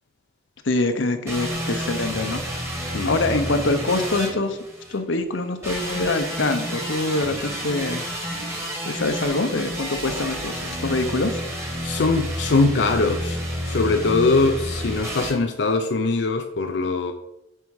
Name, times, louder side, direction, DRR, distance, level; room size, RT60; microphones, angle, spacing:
voice 1, 0.6-2.4 3.0-4.6 4.9-8.0 8.8-11.4, left 2 dB, 85° left, 8 dB, 0.9 m, -24 dB
sound 1, 1.3-5.0 5.6-15.3, equal, 15° right, 1.4 m, -30 dB
voice 2, 11.8-17.1, left 3 dB, 65° left, 6 dB, 0.5 m, -22 dB
9.1 x 4.7 x 4.8 m, 0.89 s
head